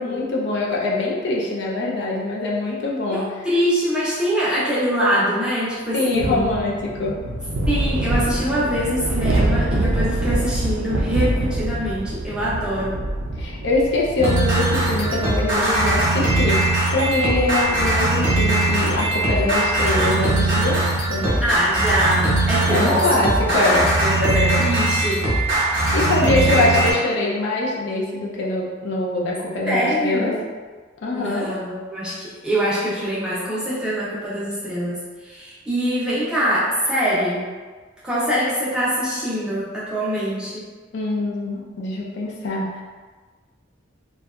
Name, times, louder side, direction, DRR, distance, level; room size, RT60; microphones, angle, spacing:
voice 1, 0.0-3.4 5.9-7.2 13.4-20.8 21.1-21.4 22.7-23.8 25.6-30.3 31.0-31.5 40.9-42.8, left 2 dB, 60° left, -3 dB, 0.4 m, -23 dB
voice 2, 3.1-6.5 7.7-13.0 21.4-23.2 23.6-25.3 26.3-26.8 29.7-30.5 31.1-37.5 38.0-40.6, equal, 5° right, -9 dB, 0.5 m, -24 dB
sound 1, 6.1-22.0, right 1 dB, 90° right, 0.4 m, -27 dB
sound 2, 14.2-26.9, right 2 dB, 45° right, 0.8 m, -20 dB
2.7 x 2.2 x 2.3 m, 1.4 s
head